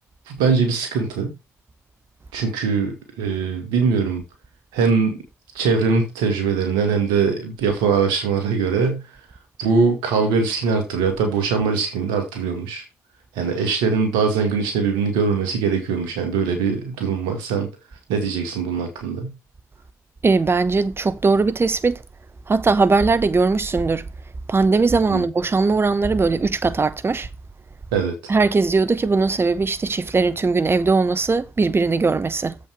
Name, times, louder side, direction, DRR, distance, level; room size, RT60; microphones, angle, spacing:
voice 1, 0.3-1.3 2.3-4.2 4.7-5.2 5.5-9.1 9.6-12.8 13.4-17.7 18.1-19.3 25.1-25.2 27.9-28.1, right 5 dB, 80° right, 2.3 m, -21 dB
voice 2, 20.2-22.0 22.5-24.1 24.5-27.3 28.3-32.6, right 4 dB, 30° right, 1.0 m, -19 dB
7.7 x 6.3 x 4.8 m
hypercardioid pair, 45°, 7 cm